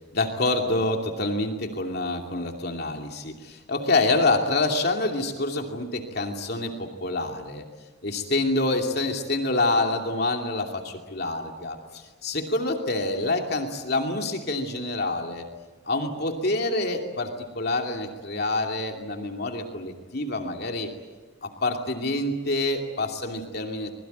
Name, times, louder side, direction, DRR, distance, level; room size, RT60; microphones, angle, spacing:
voice 1, 0.1-7.6 8.0-15.4 15.9-20.9 21.4-23.9, left 2 dB, 50° left, 3 dB, 2.7 m, -27 dB
26.0 x 21.5 x 9.4 m, 1.3 s
head